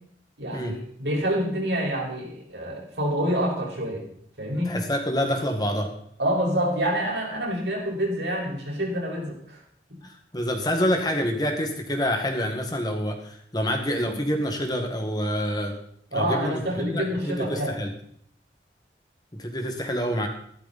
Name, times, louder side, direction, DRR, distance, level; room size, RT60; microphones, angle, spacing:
voice 1, 0.4-4.0 4.4-4.7 6.2-9.6 9.9-10.0 16.1-17.8, equal, 80° right, -2 dB, 5.3 m, -27 dB
voice 2, 4.7-5.9 10.0-15.8 16.1-17.9 19.4-20.3, equal, 20° left, 4 dB, 1.8 m, -27 dB
14.5 x 12.5 x 4.2 m, 0.66 s
head